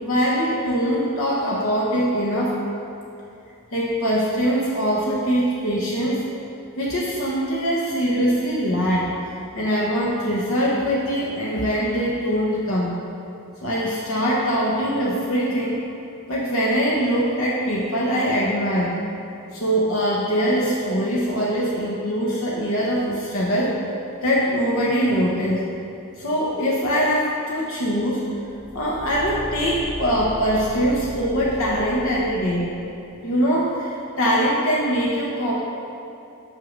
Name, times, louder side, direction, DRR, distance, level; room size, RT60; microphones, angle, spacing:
voice 1, 0.0-2.6 3.7-6.2 6.8-9.1 9.5-12.9 13.6-15.8 16.3-19.0 19.5-23.8 24.2-25.6 26.2-28.2 28.7-32.7 33.2-35.5, equal, 65° left, -5 dB, 1.1 m, -22 dB
Car / Engine, 28.4-32.9, right 1 dB, 10° right, 0.4 m, -36 dB
6.3 x 5.3 x 6.6 m, 2.8 s
head